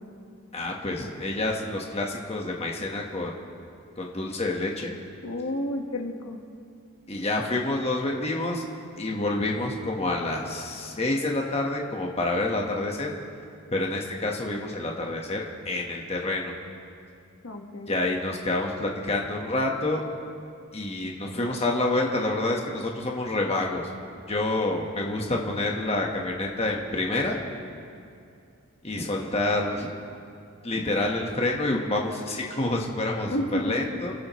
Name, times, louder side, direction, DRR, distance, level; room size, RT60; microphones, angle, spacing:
voice 1, 0.5-3.3 4.0-4.9 7.1-8.7 9.0-13.1 13.7-16.5 17.9-20.0 20.7-23.9 24.3-27.4 28.8-30.0 30.6-33.3 33.6-34.1, left 2 dB, 30° left, 0 dB, 1.4 m, -28 dB
voice 2, 5.2-6.4 17.4-17.9 33.3-33.8, left 1 dB, 85° left, 2 dB, 1.5 m, -30 dB
29.5 x 13.0 x 3.1 m, 2.5 s
head